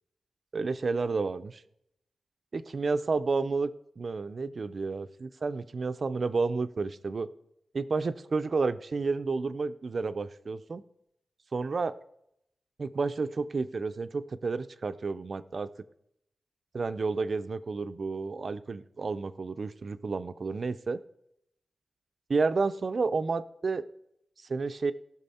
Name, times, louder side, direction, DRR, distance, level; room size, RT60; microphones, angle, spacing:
voice 1, 0.5-1.6 2.5-3.7 4.0-7.3 7.7-10.8 11.5-12.0 12.8-15.7 16.7-21.0 22.3-23.8 24.5-24.9, right 4 dB, 45° right, 13 dB, 0.5 m, -31 dB
18.0 x 6.1 x 4.2 m, 0.77 s
wide cardioid pair, 150°, 0 cm